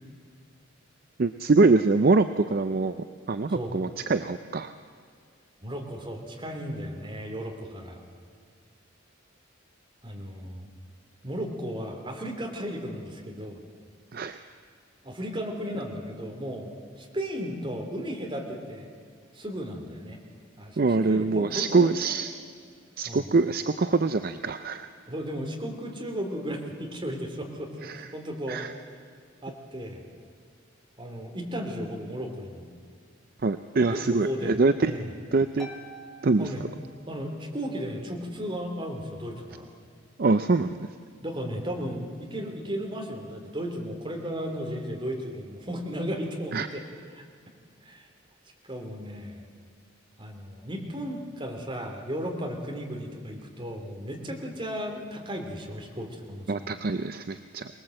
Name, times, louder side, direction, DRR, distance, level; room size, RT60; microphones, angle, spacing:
voice 1, 1.2-3.0 3.3-4.7 14.1-14.4 20.8-22.3 23.0-24.9 27.8-28.1 28.5-28.7 33.4-34.9 35.3-35.7 36.2-36.5 40.2-40.8 46.5-46.7 56.5-57.7, right 3 dB, 50° right, 10 dB, 0.5 m, -24 dB
voice 2, 5.6-8.0 10.0-10.7 11.2-13.6 15.0-16.7 17.0-18.9 19.3-20.2 20.6-20.8 21.1-22.1 23.1-23.2 25.1-28.6 29.4-30.0 31.0-32.7 33.8-34.6 34.8-35.1 36.4-36.6 37.1-39.6 41.2-46.8 47.1-47.2 47.8-48.1 48.6-49.5 50.2-56.8, equal, 25° right, 1 dB, 2.7 m, -35 dB
Harp, 35.6-37.5, right 1 dB, ahead, 1.9 m, -47 dB
24.0 x 19.0 x 7.6 m, 2.1 s
head